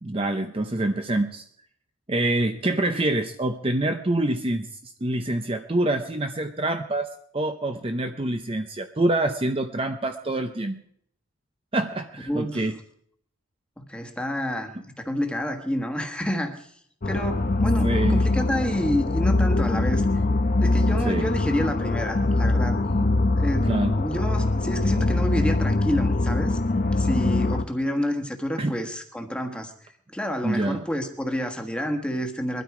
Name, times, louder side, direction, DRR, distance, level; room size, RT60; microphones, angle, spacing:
voice 1, 0.0-1.4 2.1-7.1 7.3-10.8 11.7-12.8 17.8-18.2 21.0-21.3 23.0-23.1 23.7-23.9 28.6-28.8 30.4-30.8, right 1 dB, 25° right, 7 dB, 0.6 m, -26 dB
voice 2, 12.3-12.6 13.8-16.7 17.0-20.0 20.6-22.8 23.3-23.7 24.0-26.6 27.0-29.7 30.1-32.6, equal, 5° left, 4 dB, 1.4 m, -29 dB
sound 1, 17.0-27.6, left 2 dB, 40° left, 0.7 m, -23 dB
21.5 x 12.5 x 4.9 m, 0.67 s
head